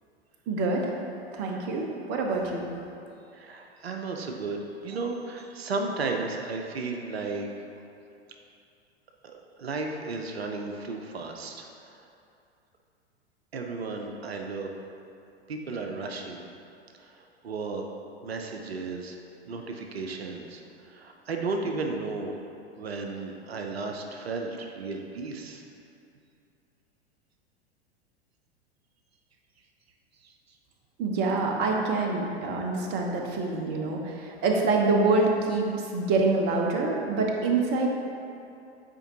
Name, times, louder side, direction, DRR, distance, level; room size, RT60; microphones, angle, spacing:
voice 1, 0.5-0.9 1.3-2.7 31.0-37.9, right 3 dB, 30° right, 1 dB, 0.9 m, -26 dB
voice 2, 3.3-7.5 9.2-11.7 13.5-14.7 15.5-16.4 17.0-17.8 18.2-19.2 19.5-22.3 22.8-25.6 30.2-30.3, right 3 dB, 70° right, 2 dB, 0.7 m, -34 dB
9.0 x 4.5 x 2.8 m, 2.6 s
figure-of-eight pair, 90°, 32 cm